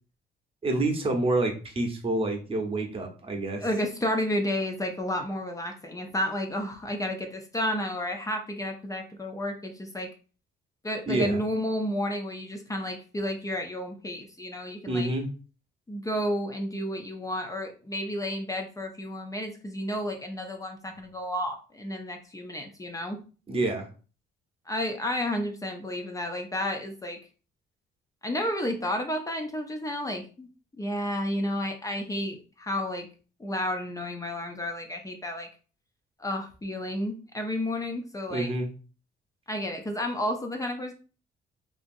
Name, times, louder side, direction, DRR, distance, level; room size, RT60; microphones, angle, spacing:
voice 1, 0.6-3.6 11.1-11.4 14.9-15.3 23.5-23.9 38.3-38.7, right 2 dB, 30° right, 4 dB, 0.8 m, -28 dB
voice 2, 3.6-10.1 10.8-15.1 15.9-23.2 24.7-27.2 28.2-30.5 30.8-33.1 33.4-35.5 36.2-38.5 39.5-40.9, left 1 dB, 15° left, 3 dB, 0.5 m, -31 dB
2.8 x 2.6 x 2.6 m, 0.36 s
cardioid pair, 90°, 20 cm